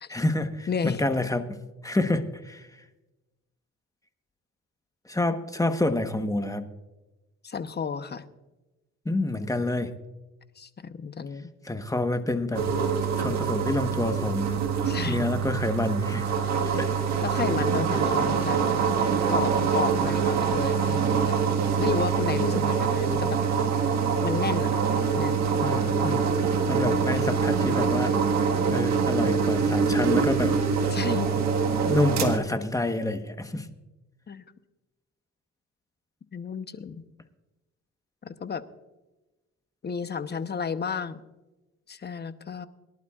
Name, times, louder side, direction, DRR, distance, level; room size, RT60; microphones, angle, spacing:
voice 1, 0.1-1.6 1.8-2.7 5.0-6.7 9.0-9.9 11.6-12.6 13.1-14.6 15.1-16.3 16.8-17.0 25.6-28.2 28.7-30.6 31.9-33.7, left 2 dB, 10° left, 8 dB, 1.2 m, -28 dB
voice 2, 0.7-1.1 7.4-8.2 10.6-11.5 14.9-15.3 17.2-18.6 19.3-21.4 21.8-23.4 24.2-24.7 25.2-25.4 30.9-31.3 34.3-34.4 36.3-37.0 38.2-38.7 39.8-41.2 41.9-42.7, left 6 dB, 35° left, 11 dB, 0.9 m, -32 dB
sound 1, 12.5-32.4, right 6 dB, 65° right, 1.7 m, -25 dB
23.0 x 11.5 x 2.4 m, 1.1 s
cardioid pair, 90°, 30 cm